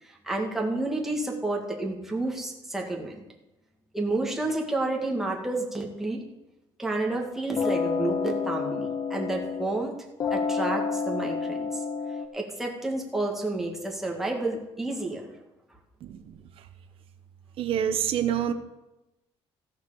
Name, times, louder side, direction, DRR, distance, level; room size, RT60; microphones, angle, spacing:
voice 1, 0.0-3.2 3.9-6.2 6.8-10.0 10.3-11.8 12.3-15.3, right 2 dB, 5° right, -1 dB, 1.8 m, -30 dB
sound 1, 7.6-9.9 10.2-12.3, left 5 dB, 35° left, 0.7 m, -29 dB
voice 2, 16.0-16.4 17.6-18.5, right 9 dB, 55° right, 7 dB, 1.0 m, -27 dB
14.5 x 6.5 x 6.8 m, 0.97 s
cardioid pair, 160°, 11 cm